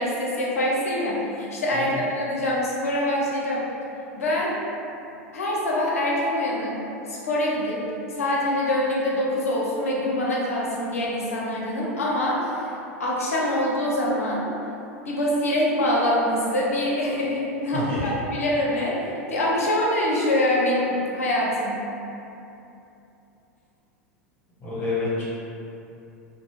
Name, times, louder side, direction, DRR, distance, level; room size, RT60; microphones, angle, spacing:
voice 1, 0.0-3.7 4.1-4.5 5.3-6.8 7.1-7.9 8.2-14.5 15.1-21.8, left 1 dB, 80° left, -4 dB, 0.5 m, -24 dB
voice 2, 1.7-2.0 17.7-18.1 24.6-25.2, left 3 dB, 25° left, -9 dB, 1.2 m, -28 dB
2.3 x 2.0 x 3.4 m, 2.8 s
figure-of-eight pair, 85°, 8 cm